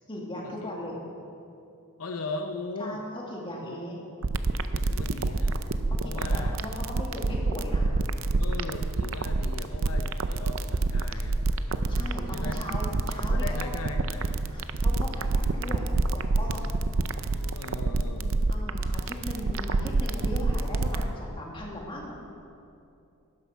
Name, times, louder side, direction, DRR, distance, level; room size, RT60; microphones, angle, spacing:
voice 1, 0.1-1.0 2.8-3.0 3.3-4.1 5.9-8.0 11.9-13.7 14.5-16.7 18.5-22.2, left 1 dB, 20° left, -2 dB, 1.8 m, -38 dB
voice 2, 2.0-3.0 3.6-3.8 4.7-5.6 6.0-6.6 8.4-11.5 12.3-12.6 13.3-14.4 17.3-18.5, left 3 dB, 75° left, 5 dB, 0.7 m, -38 dB
sound 1, 4.2-21.0, right 3 dB, 65° right, 0.5 m, -26 dB
11.5 x 9.7 x 5.7 m, 2.6 s
head